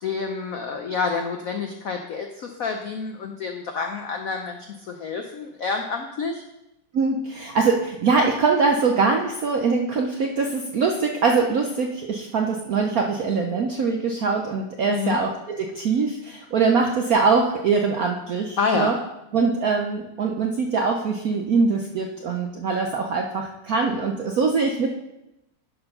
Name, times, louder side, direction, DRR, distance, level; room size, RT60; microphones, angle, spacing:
voice 1, 0.0-6.4 14.9-15.2 18.6-18.9, left 5 dB, 80° left, 4 dB, 0.7 m, -28 dB
voice 2, 6.9-19.0 19.3-24.9, right 4 dB, 70° right, 2 dB, 0.8 m, -23 dB
11.5 x 4.4 x 5.4 m, 0.90 s
omnidirectional pair, 2.4 m